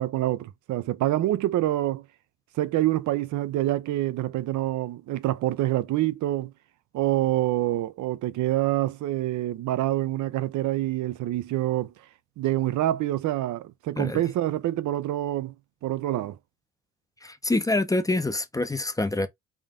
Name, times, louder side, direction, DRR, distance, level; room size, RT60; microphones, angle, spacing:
voice 1, 0.0-2.0 2.5-6.5 6.9-11.9 12.4-15.5 15.8-16.4, right 14 dB, 75° right, 0.5 m, -26 dB
voice 2, 17.2-19.3, left 2 dB, 10° left, 0.5 m, -26 dB
3.6 x 2.6 x 3.6 m
cardioid pair, 90°, 30 cm